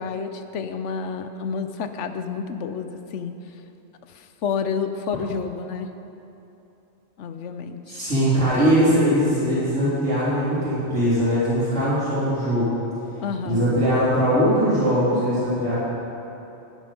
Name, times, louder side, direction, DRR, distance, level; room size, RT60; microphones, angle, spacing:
voice 1, 0.0-3.3 4.1-5.9 7.2-8.1 13.2-13.7, left 5 dB, 85° left, 9 dB, 1.0 m, -30 dB
voice 2, 7.9-12.7 13.5-15.8, equal, 80° right, -13 dB, 3.8 m, -21 dB
11.0 x 10.5 x 5.2 m, 2.9 s
omnidirectional pair, 1.2 m